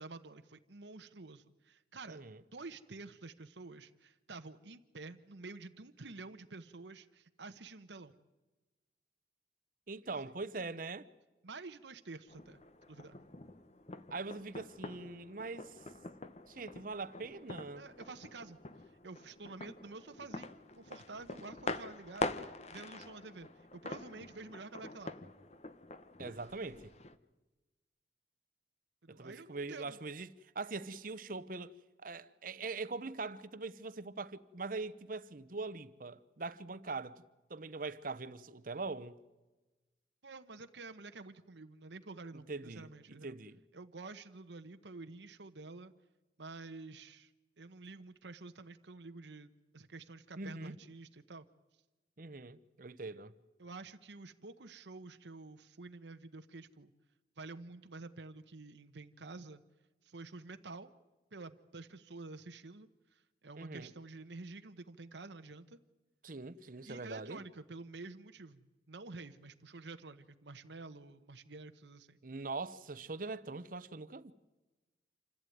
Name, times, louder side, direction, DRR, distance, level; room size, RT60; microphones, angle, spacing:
voice 1, 0.0-2.2 2.5-8.1 11.4-12.6 12.9-13.2 17.8-18.6 19.0-25.1 29.0-30.0 40.2-43.4 43.7-45.9 46.4-47.3 47.6-51.5 53.6-56.9 57.4-59.6 60.0-60.9 61.3-65.8 66.9-72.2, right 3 dB, 85° right, 1.0 m, -49 dB
voice 2, 2.1-2.4 9.9-11.0 14.1-15.8 16.5-17.8 26.2-26.9 29.1-31.7 32.0-37.2 37.5-39.2 42.5-42.9 43.2-43.6 50.4-50.7 52.2-53.3 63.6-63.9 66.2-67.4 72.2-74.3, right 3 dB, 50° right, 0.9 m, -42 dB
sound 1, 12.3-27.2, left 2 dB, 40° left, 1.0 m, -45 dB
27.0 x 14.5 x 9.3 m
head